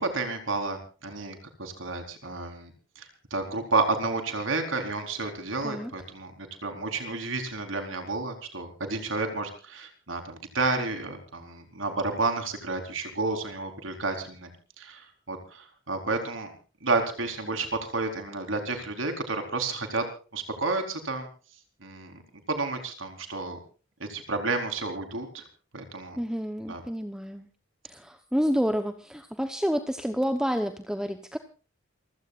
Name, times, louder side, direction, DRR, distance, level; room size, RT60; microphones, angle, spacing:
voice 1, 0.0-14.5 14.8-16.5 16.8-20.1 20.3-21.3 21.8-22.2 22.5-23.6 24.0-25.4 25.7-26.2 26.7-26.8, right 3 dB, 80° right, 5 dB, 4.3 m, -31 dB
voice 2, 26.2-27.5 27.8-31.4, equal, 5° right, 7 dB, 1.0 m, -29 dB
28.0 x 16.5 x 2.5 m, 0.36 s
head